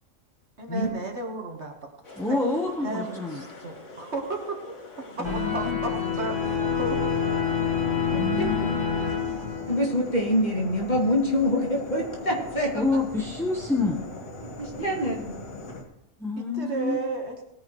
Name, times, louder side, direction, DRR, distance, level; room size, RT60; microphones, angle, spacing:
voice 1, 0.6-1.7 2.3-2.4 2.8-7.5 16.4-17.4, right 3 dB, 55° right, 2 dB, 1.7 m, -34 dB
sound 1, 2.0-15.8, left 2 dB, 85° left, 2.1 m, -41 dB
voice 2, 2.2-3.4 5.2-5.8 8.2-8.8 12.7-14.0 16.2-17.0, left 3 dB, ahead, -1 dB, 0.9 m, -27 dB
sound 2, 5.2-10.1, left 6 dB, 65° left, 1.9 m, -27 dB
voice 3, 8.1-8.4 9.7-13.0 14.4-15.3, left 1 dB, 35° left, -2 dB, 2.6 m, -25 dB
19.0 x 9.9 x 3.1 m, 0.85 s
omnidirectional pair, 1.4 m